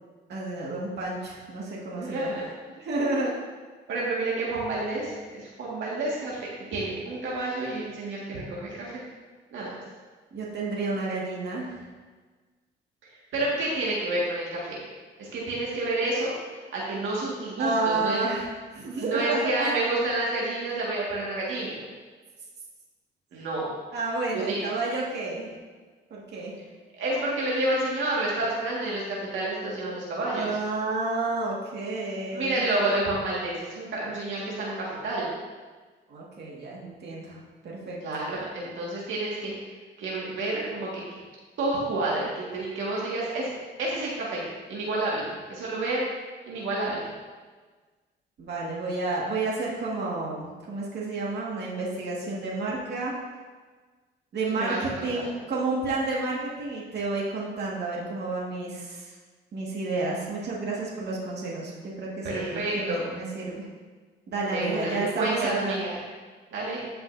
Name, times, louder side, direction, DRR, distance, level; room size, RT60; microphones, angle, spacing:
voice 1, 0.3-2.3 2.8-3.3 10.3-11.8 17.6-19.7 23.9-25.5 26.1-26.5 30.3-32.6 36.1-38.0 48.4-53.1 54.3-54.7 55.0-59.1 59.5-63.7 64.3-65.8, right 3 dB, 60° right, -4 dB, 2.1 m, -30 dB
voice 2, 1.9-2.5 3.9-9.0 9.5-9.7 13.0-14.8 15.2-18.3 19.0-21.8 23.3-23.7 24.3-24.6 27.0-30.5 32.3-35.3 38.0-41.0 41.6-43.5 43.8-46.0 46.5-47.1 54.5-55.3 62.2-63.1 64.5-66.0 66.5-66.8, right 2 dB, 75° right, -5 dB, 2.0 m, -29 dB
14.0 x 5.7 x 2.8 m, 1.4 s
cardioid pair, 90°, 20 cm